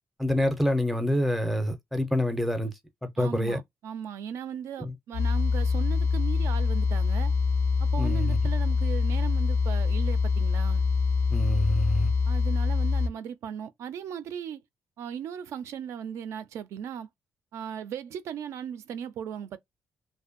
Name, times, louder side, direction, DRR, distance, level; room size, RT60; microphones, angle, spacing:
voice 1, 0.2-2.7 3.0-3.6 4.8-4.9 8.0-8.4 11.3-12.1, equal, ahead, 0.4 m, -26 dB
voice 2, 3.2-7.3 7.8-10.8 12.3-14.6 15.0-17.1 17.5-19.6, right 8 dB, 75° right, 0.3 m, -37 dB
sound 1, 5.1-13.1, left 4 dB, 85° left, 0.4 m, -25 dB
2.5 x 2.1 x 2.4 m
cardioid pair, 150°, 5 cm